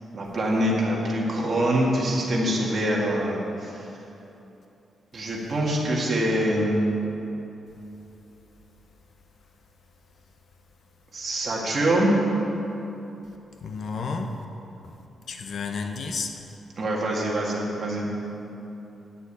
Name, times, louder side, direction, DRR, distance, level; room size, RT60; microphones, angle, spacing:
voice 1, 0.1-3.7 5.1-6.9 11.1-12.1 16.8-18.1, right 1 dB, 35° right, -3 dB, 2.0 m, -24 dB
voice 2, 13.6-14.4 15.3-16.4, left 4 dB, 50° left, 5 dB, 0.7 m, -31 dB
9.8 x 6.5 x 8.5 m, 2.9 s
wide cardioid pair, 165°, 0 cm